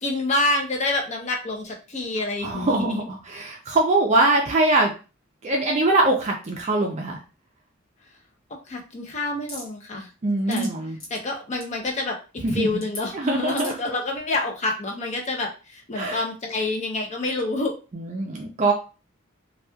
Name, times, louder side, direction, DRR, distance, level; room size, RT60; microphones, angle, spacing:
voice 1, 0.0-3.0 8.0-8.1 8.5-10.1 10.5-10.7 11.1-17.7, left 2 dB, 35° left, 2 dB, 0.6 m, -28 dB
voice 2, 2.4-4.9 5.4-7.2 10.2-11.0 12.4-12.8 13.1-13.7 16.0-16.2 17.9-18.7, right 2 dB, 35° right, 1 dB, 0.4 m, -22 dB
sound 1, 9.5-9.7 10.3-10.7 11.0-11.2 11.5-11.7 12.8-13.0 13.5-13.9, left 1 dB, 90° left, 1.2 m, -36 dB
2.9 x 2.3 x 2.2 m, 0.34 s
head